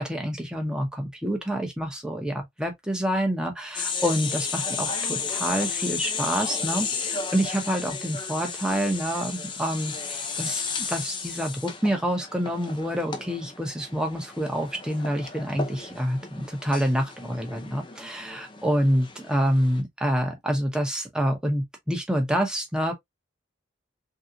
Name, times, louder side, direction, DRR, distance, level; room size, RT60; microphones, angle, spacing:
voice 1, 0.0-22.9, equal, 5° right, 0.8 m, -27 dB
sound 1, 3.7-19.8, left 5 dB, 25° left, 0.5 m, -33 dB
3.4 x 2.8 x 2.5 m
head